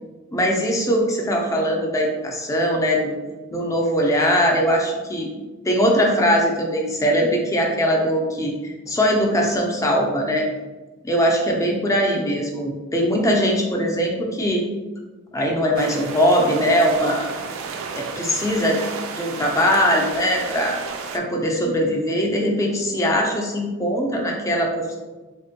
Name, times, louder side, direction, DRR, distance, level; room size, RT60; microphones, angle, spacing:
voice 1, 0.3-3.1 3.5-5.3 5.6-10.5 11.0-14.6 15.3-17.3 17.9-18.8 19.2-20.8 21.1-24.9, equal, 15° left, 0 dB, 0.4 m, -21 dB
sound 1, 15.7-21.2, right 5 dB, 65° right, 0.3 m, -32 dB
3.2 x 2.1 x 2.7 m, 1.2 s
head